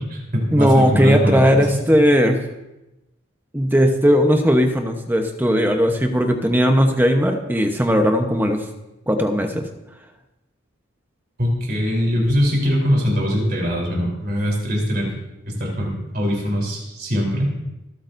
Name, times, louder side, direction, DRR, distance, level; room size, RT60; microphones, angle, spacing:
voice 1, 0.0-1.8 11.4-15.1 15.5-17.7, equal, 50° right, -2 dB, 3.7 m, -22 dB
voice 2, 0.5-2.4 3.5-8.6 9.1-9.7, equal, 10° right, 4 dB, 0.9 m, -17 dB
26.5 x 8.8 x 2.6 m, 0.98 s
head